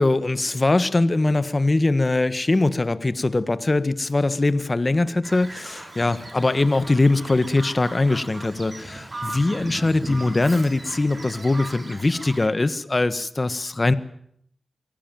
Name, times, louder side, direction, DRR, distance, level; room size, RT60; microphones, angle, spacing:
voice 1, 0.0-13.9, left 2 dB, 35° left, 13 dB, 1.6 m, -22 dB
Bird vocalization bird call bird song, 5.2-12.5, right 2 dB, 40° right, 4.2 m, -37 dB
23.5 x 17.5 x 9.3 m, 0.70 s
cardioid pair, 55°, 0 cm